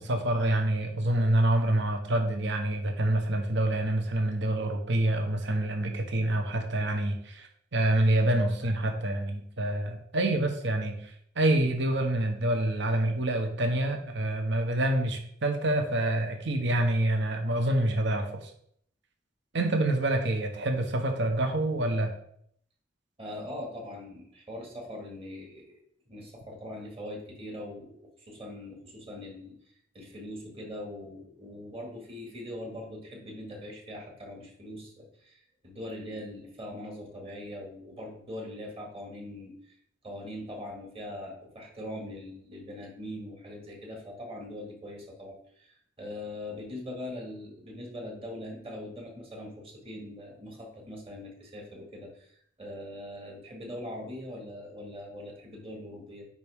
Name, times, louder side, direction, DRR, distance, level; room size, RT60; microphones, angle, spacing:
voice 1, 0.0-18.5 19.5-22.1, right 1 dB, 65° right, 4 dB, 1.0 m, -27 dB
voice 2, 23.2-25.8 26.1-29.6 29.9-39.7 40.0-56.3, left 1 dB, 30° right, 0 dB, 1.8 m, -41 dB
9.5 x 4.2 x 3.6 m, 0.66 s
head